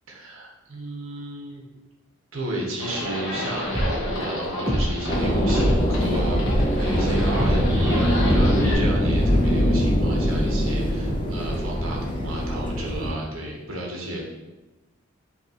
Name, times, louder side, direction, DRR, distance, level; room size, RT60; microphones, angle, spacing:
voice 1, 0.1-1.6 2.3-14.2, right 1 dB, 70° right, -2 dB, 0.9 m, -33 dB
Livestock farm animals working animals, 2.8-8.7, left 1 dB, 70° left, 1.1 m, -32 dB
sound 1, 3.6-8.7, equal, 15° right, 0.6 m, -27 dB
sound 2, 5.1-13.1, equal, 25° left, 0.4 m, -22 dB
5.5 x 2.7 x 2.9 m, 1.1 s
head